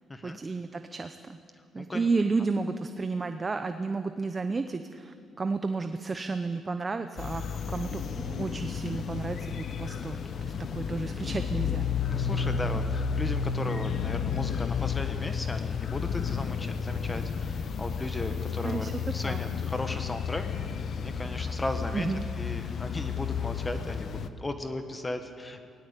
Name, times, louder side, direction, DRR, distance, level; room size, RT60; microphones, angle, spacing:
voice 1, 0.2-1.4 1.7-11.9 18.6-18.9 19.2-19.4 21.9-22.3, right 4 dB, 30° right, 8 dB, 0.8 m, -32 dB
voice 2, 1.8-2.1 10.6-10.7 12.1-22.1 22.4-25.7, left 2 dB, 20° left, 7 dB, 1.4 m, -36 dB
sound 1, 7.2-24.3, left 6 dB, 55° left, 1.0 m, -32 dB
18.5 x 17.0 x 8.3 m, 2.3 s
cardioid pair, 90°, 0 cm